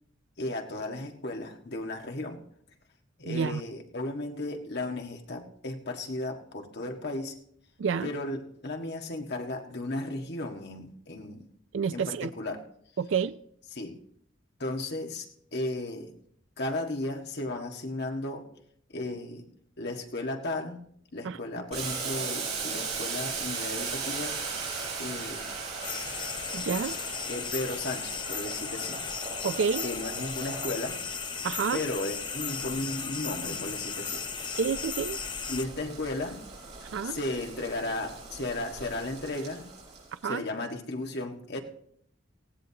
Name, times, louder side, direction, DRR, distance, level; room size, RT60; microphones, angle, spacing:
voice 1, 0.4-2.4 3.2-7.4 8.0-11.5 11.9-12.6 13.7-14.0 14.6-16.1 16.6-18.5 18.9-19.5 19.8-20.8 21.1-24.4 25.0-25.5 27.3-29.0 29.8-31.0 31.7-34.6 35.5-36.4 37.0-39.6 40.2-41.6, left 2 dB, 60° left, 1.6 m, -35 dB
voice 2, 3.2-3.6 7.8-8.1 11.7-12.3 13.0-13.4 21.2-21.4 26.5-27.0 29.4-29.8 31.4-31.8 34.6-35.2 36.8-37.2 40.2-40.4, right 6 dB, 70° right, 0.4 m, -29 dB
Boiling, 21.7-40.1, right 4 dB, 35° right, 6.8 m, -38 dB
sound 1, 25.8-35.7, left 6 dB, 25° left, 0.7 m, -36 dB
19.0 x 15.5 x 2.9 m
head